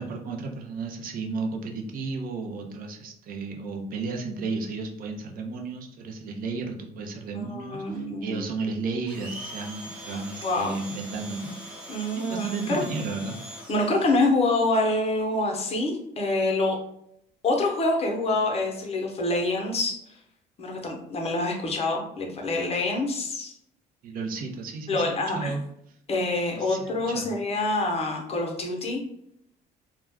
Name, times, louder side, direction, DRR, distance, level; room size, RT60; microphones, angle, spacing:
voice 1, 0.0-11.8 12.1-13.4 24.0-25.6 26.5-27.4, right 3 dB, 60° right, 2 dB, 0.6 m, -33 dB
voice 2, 7.3-8.5 10.4-10.8 11.9-12.8 13.7-16.8 17.4-20.2 20.6-23.5 24.9-25.5 26.1-29.0, left 2 dB, 35° left, 1 dB, 0.7 m, -26 dB
Domestic sounds home sounds, 9.1-14.2, equal, 5° right, 0.7 m, -41 dB
2.4 x 2.1 x 3.4 m, 0.74 s
cardioid pair, 110°, 17 cm